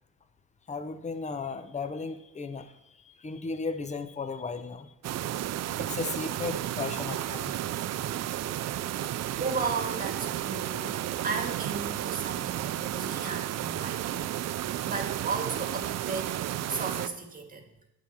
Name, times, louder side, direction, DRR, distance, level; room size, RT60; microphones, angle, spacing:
voice 1, 0.7-2.8 3.0-4.9 5.8-7.5 8.8-8.9, left 4 dB, 25° left, 10 dB, 0.8 m, -35 dB
sound 1, 5.0-17.1, right 12 dB, 60° right, 0.5 m, -32 dB
voice 2, 9.4-16.4 16.7-17.7, right 4 dB, 30° right, 3 dB, 1.9 m, -35 dB
9.4 x 4.0 x 7.3 m, 0.83 s
cardioid pair, 90°, 30 cm